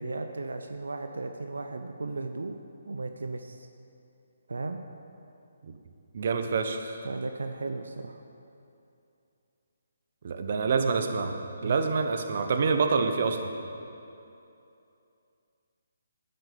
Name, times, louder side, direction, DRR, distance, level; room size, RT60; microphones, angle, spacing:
voice 1, 0.0-2.6 2.9-3.7 4.5-4.8 7.0-8.2 11.6-11.8, right 3 dB, 85° right, 6 dB, 0.7 m, -35 dB
voice 2, 6.1-7.0 10.2-11.4 11.6-13.5, right 4 dB, 50° right, 6 dB, 0.9 m, -27 dB
9.4 x 7.8 x 6.9 m, 2.7 s
hypercardioid pair, 155°, 0 cm